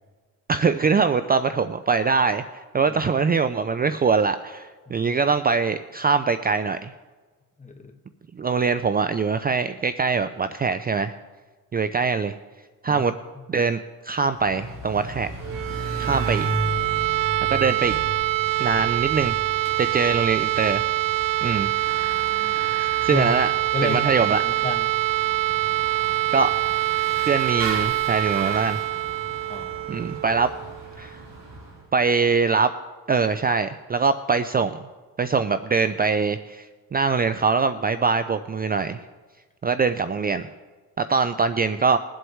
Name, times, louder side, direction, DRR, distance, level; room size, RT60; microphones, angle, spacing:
voice 1, 0.5-6.9 8.3-11.1 11.7-12.4 12.8-13.1 13.5-15.3 16.0-16.5 17.4-17.9 18.6-19.3 19.8-20.9 21.4-21.7 22.8-23.5 23.8-24.4 26.3-26.5 27.2-28.8 29.9-30.5 31.0-31.2 31.9-32.7 33.1-34.9 35.2-39.0 39.6-40.5 41.0-42.0, right 5 dB, 25° right, 11 dB, 0.5 m, -23 dB
voice 2, 7.6-7.9 12.9-13.1 22.0-22.6 23.1-23.5 23.7-24.9 29.5-30.1, left 4 dB, 20° left, 3 dB, 1.6 m, -32 dB
Bicycle / Mechanisms, 14.2-31.8, right 1 dB, 50° right, 4.0 m, -36 dB
sound 1, 15.4-31.2, right 17 dB, 70° right, 0.7 m, -25 dB
22.5 x 7.9 x 3.2 m, 1.4 s
cardioid pair, 85°, 35 cm